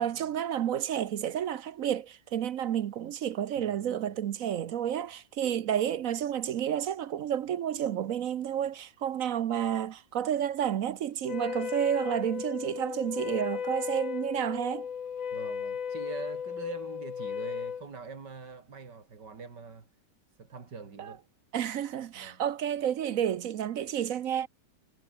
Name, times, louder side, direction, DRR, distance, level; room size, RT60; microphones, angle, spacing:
voice 1, 0.0-14.9 21.0-21.2 21.5-24.5, right 10 dB, 60° right, 1.0 m, -30 dB
voice 2, 3.6-4.2 15.3-19.9 20.4-21.3 22.1-22.4, right 5 dB, 80° right, 3.4 m, -44 dB
Wind instrument woodwind instrument, 11.2-17.9, left 7 dB, 50° left, 1.6 m, -35 dB
omnidirectional pair, 1.8 m